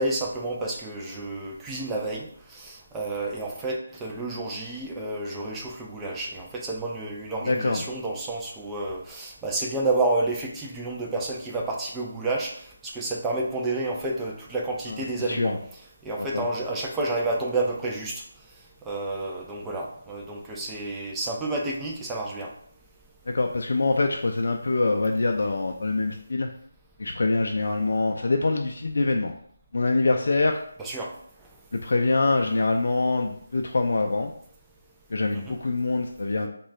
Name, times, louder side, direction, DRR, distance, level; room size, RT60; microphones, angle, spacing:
voice 1, 0.0-15.6 16.0-18.2 18.9-22.5 30.8-31.1 35.3-35.6, right 2 dB, 5° right, -2 dB, 0.4 m, -30 dB
voice 2, 7.4-7.8 14.9-15.6 16.2-16.5 23.3-26.5 27.0-29.3 29.7-30.6 31.7-34.3 35.1-36.5, left 3 dB, 60° left, 3 dB, 0.3 m, -24 dB
3.6 x 2.3 x 3.2 m, 0.63 s
figure-of-eight pair, 170°, 0 cm